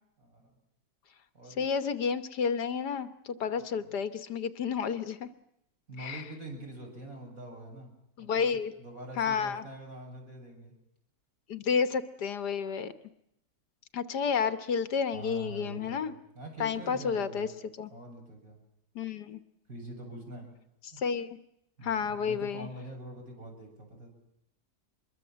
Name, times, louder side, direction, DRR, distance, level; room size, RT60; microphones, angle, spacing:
voice 1, 0.2-0.5 1.3-1.7 3.8-3.9 5.9-7.9 8.2-10.7 15.1-17.5 17.9-18.6 19.7-20.5 20.9-21.0 21.8-24.1, right 1 dB, 50° right, 1 dB, 7.9 m, -44 dB
voice 2, 1.6-5.3 6.0-6.2 8.2-8.7 9.2-9.6 11.5-12.9 13.9-16.1 16.6-17.5 17.8-17.9 19.0-19.4 21.0-21.4 21.8-22.7, left 6 dB, 70° left, 11 dB, 1.7 m, -31 dB
25.0 x 22.0 x 7.5 m, 0.78 s
omnidirectional pair, 1.8 m